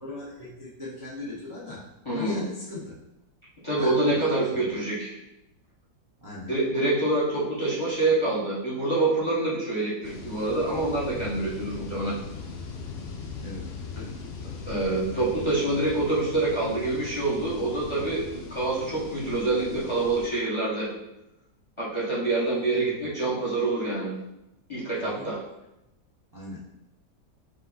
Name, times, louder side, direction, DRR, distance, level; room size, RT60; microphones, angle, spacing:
voice 1, 0.0-3.0 3.8-4.7 6.2-6.5 13.4-13.7 13.9-14.3 15.5-15.6 18.0-18.2 22.7-23.1 24.9-25.3 26.3-26.6, left 2 dB, 15° right, -9 dB, 0.6 m, -39 dB
voice 2, 2.0-2.4 3.6-5.1 6.5-12.2 14.6-20.9 21.8-24.1 24.7-25.4, right 2 dB, 20° left, -8 dB, 1.0 m, -26 dB
sound 1, 10.0-20.3, left 4 dB, 90° left, 0.5 m, -39 dB
5.1 x 2.2 x 3.9 m, 0.89 s
omnidirectional pair, 1.8 m